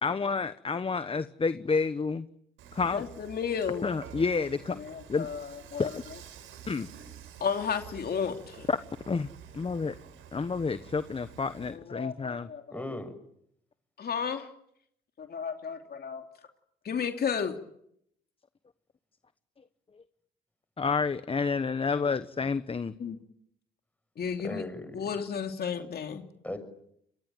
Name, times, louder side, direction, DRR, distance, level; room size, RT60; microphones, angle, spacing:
voice 1, 0.0-2.3 2.7-3.1 3.8-4.8 5.1-5.3 5.8-5.9 6.7-6.9 8.7-8.8 9.1-9.3 9.5-9.9 10.3-12.5 20.8-22.9, left 4 dB, 30° left, 13 dB, 1.1 m, -29 dB
Dishes pots and pans / Frying (food), 2.6-11.8, right 9 dB, 90° right, 4.9 m, -49 dB
voice 2, 2.9-3.9 4.8-5.9 7.4-8.7 11.7-12.8 14.0-14.5 15.2-16.2 16.8-17.5 23.0-23.2 24.2-24.6 24.9-26.3, left 7 dB, 50° left, 5 dB, 2.9 m, -33 dB
voice 3, 12.7-13.1 24.4-25.1 26.4-26.6, left 1 dB, 5° left, 8 dB, 6.9 m, -37 dB
28.5 x 23.0 x 9.2 m, 0.73 s
cardioid pair, 90°, 20 cm